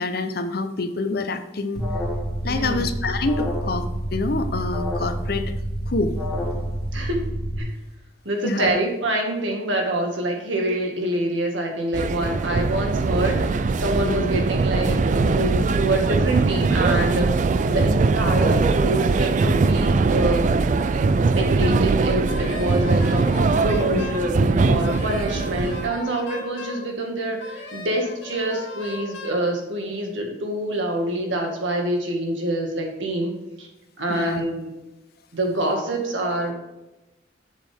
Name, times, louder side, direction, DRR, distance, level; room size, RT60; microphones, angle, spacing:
voice 1, 0.0-1.9 2.4-5.4 5.9-6.7 8.4-8.7 14.0-14.3 17.7-17.9 23.9-24.1 34.1-34.4, left 3 dB, 55° left, 9 dB, 0.7 m, -27 dB
Alarm, 1.7-7.6, equal, ahead, 1.6 m, -28 dB
voice 2, 2.5-2.8 6.9-7.2 7.6-7.7 8.3-17.3 17.7-20.5 21.2-33.7 34.0-34.7 35.3-36.5, right 1 dB, 90° right, 2 dB, 1.9 m, -26 dB
sound 1, 11.9-25.9, right 3 dB, 40° right, 0.3 m, -21 dB
Wind instrument woodwind instrument, 22.3-24.3 24.8-26.9 27.4-29.4, left 3 dB, 80° left, 2.1 m, -37 dB
7.5 x 7.3 x 3.5 m, 0.98 s
head